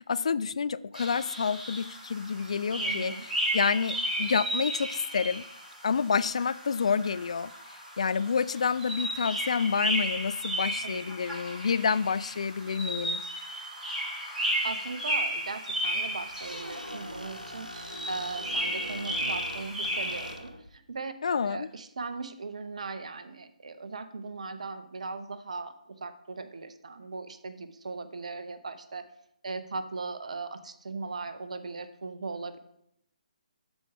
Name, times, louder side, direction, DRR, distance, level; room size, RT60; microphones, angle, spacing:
voice 1, 0.0-5.4 5.8-7.5 8.0-13.2 21.2-21.7, left 6 dB, 50° left, 0.3 m, -28 dB
sound 1, 0.9-20.3, equal, 10° right, 2.5 m, -34 dB
voice 2, 2.7-3.2 10.8-11.0 14.6-21.1 21.4-29.1 29.4-32.6, right 3 dB, 55° right, 0.9 m, -38 dB
Squeak, 16.2-20.8, equal, 90° right, 1.2 m, -42 dB
12.0 x 4.4 x 5.8 m
figure-of-eight pair, 140°, 4 cm